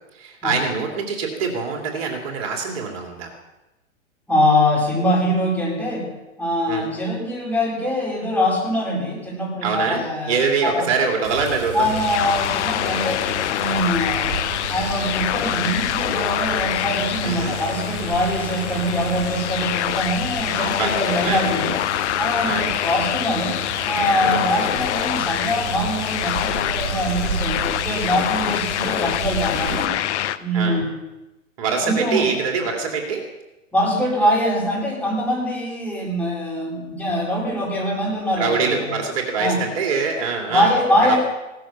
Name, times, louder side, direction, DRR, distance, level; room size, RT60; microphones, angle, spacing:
voice 1, 0.2-3.3 6.7-6.8 9.6-11.9 17.2-17.6 20.6-20.9 21.2-21.4 22.4-22.7 24.2-24.4 30.5-30.8 31.6-33.2 38.4-40.7 41.1-41.2, right 5 dB, 50° right, 2 dB, 2.6 m, -24 dB
voice 2, 4.3-6.1 6.4-10.9 11.7-13.3 13.5-14.3 14.7-21.8 22.2-23.6 23.8-29.9 30.4-30.9 31.8-32.3 33.7-38.9 39.4-39.6 40.5-41.2, equal, 5° left, -4 dB, 4.7 m, -23 dB
Water, 11.2-29.9, right 6 dB, 65° right, 2.3 m, -33 dB
sound 1, 11.8-30.4, left 13 dB, 55° left, 0.8 m, -25 dB
17.0 x 13.0 x 5.7 m, 1.0 s
hypercardioid pair, 125°, 40 cm